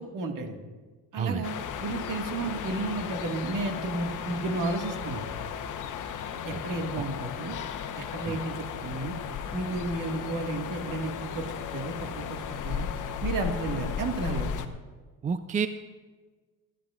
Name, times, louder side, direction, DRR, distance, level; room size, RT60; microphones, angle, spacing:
voice 1, 0.1-0.6 1.1-1.5 1.8-5.3 6.4-7.6 8.0-8.6 8.8-9.1 9.5-11.5 11.7-12.9 13.2-14.5, right 2 dB, 55° right, 4 dB, 1.9 m, -32 dB
sound 1, 1.4-14.7, left 7 dB, 55° left, 1.1 m, -35 dB
voice 2, 15.2-15.7, right 6 dB, 20° right, 11 dB, 0.4 m, -29 dB
26.5 x 10.0 x 2.5 m, 1.4 s
supercardioid pair, 90°, 37 cm